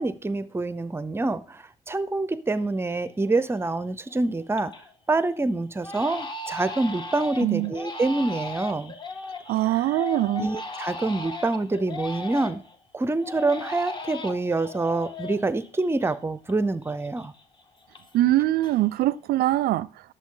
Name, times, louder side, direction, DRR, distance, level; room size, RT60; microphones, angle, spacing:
voice 1, 0.0-4.7 5.1-8.9 9.6-9.8 10.4-12.6 12.9-17.3, right 2 dB, 15° right, 0.6 m, -26 dB
Crying sobbing, 2.7-2.8 3.2-3.7 4.1-4.9 5.2-5.4 5.8-12.8 13.2-16.6 16.8-18.3 18.6-19.2, left 2 dB, 25° left, 1.2 m, -37 dB
voice 2, 7.4-7.7 9.5-10.5 18.1-19.9, right 15 dB, 65° right, 0.4 m, -22 dB
11.5 x 7.1 x 3.8 m
cardioid pair, 110°, 17 cm